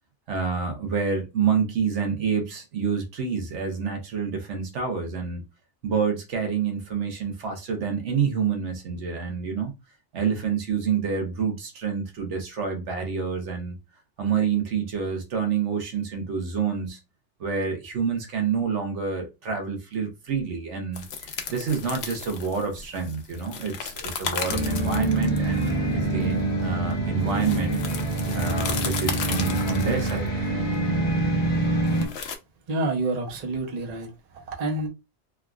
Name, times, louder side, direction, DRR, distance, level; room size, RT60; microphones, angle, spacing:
voice 1, 0.3-5.4 5.8-9.7 10.1-13.8 14.2-17.0 17.4-27.8 28.3-30.3, right 6 dB, 85° right, 1.2 m, -28 dB
sound 1, 20.9-32.3, left 6 dB, 70° left, 0.8 m, -35 dB
sound 2, 24.5-32.1, right 2 dB, 45° left, 1.3 m, -25 dB
voice 2, 32.7-34.9, right 2 dB, 40° right, 0.8 m, -28 dB
3.4 x 2.3 x 2.3 m
omnidirectional pair, 1.2 m